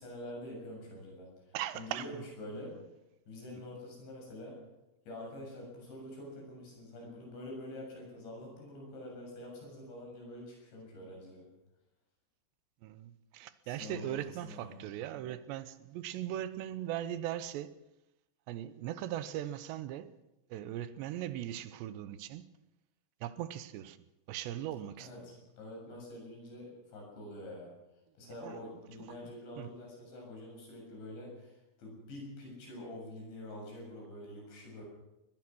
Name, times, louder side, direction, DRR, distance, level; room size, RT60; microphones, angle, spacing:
voice 1, 0.0-2.8 3.3-4.6 5.1-11.5 13.6-14.9 25.0-27.7 28.2-34.8, left 1 dB, 80° left, 9.4 m, -46 dB
voice 2, 1.5-2.2 12.8-17.8 18.5-20.1 20.5-22.5 23.2-24.0 24.3-25.1 28.4-28.6 29.6-29.7, right 12 dB, 80° right, 3.1 m, -39 dB
21.5 x 20.5 x 6.3 m
omnidirectional pair, 5.1 m